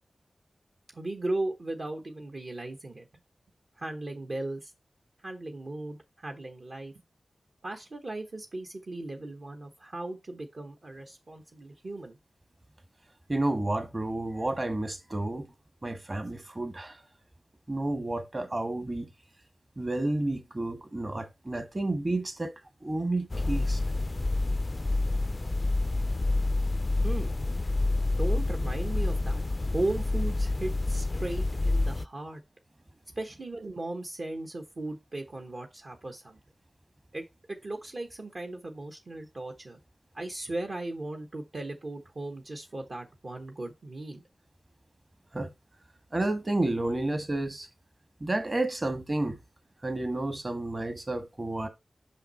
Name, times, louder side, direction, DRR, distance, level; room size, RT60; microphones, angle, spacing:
voice 1, 0.9-3.1 3.8-4.7 5.2-6.9 7.6-12.2 27.0-27.3 28.2-29.4 29.7-32.4 33.2-36.4 37.1-39.8 40.1-44.2, right 2 dB, 55° right, 1.1 m, -37 dB
voice 2, 13.3-15.5 15.8-17.0 17.7-19.0 19.8-22.5 22.8-23.8 45.3-45.5 46.1-47.7 48.2-49.4 49.8-51.7, right 2 dB, 35° right, 1.5 m, -31 dB
sound 1, 23.3-32.0, left 2 dB, 35° left, 0.3 m, -28 dB
5.7 x 5.6 x 4.3 m
cardioid pair, 55°, 0 cm